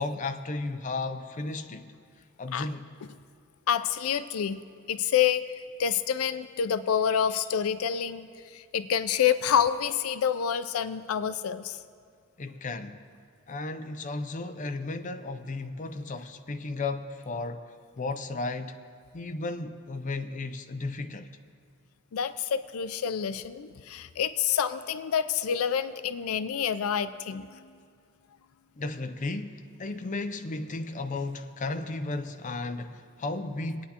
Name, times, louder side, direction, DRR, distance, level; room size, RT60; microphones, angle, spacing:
voice 1, 0.0-1.9 2.4-2.9 12.4-13.0 13.5-17.6 18.0-18.8 19.1-21.3 28.8-33.8, left 3 dB, 35° left, 0.5 m, -34 dB
voice 2, 3.7-4.6 4.9-11.8 22.1-27.8, left 8 dB, 90° left, 0.4 m, -28 dB
23.5 x 9.2 x 2.9 m
head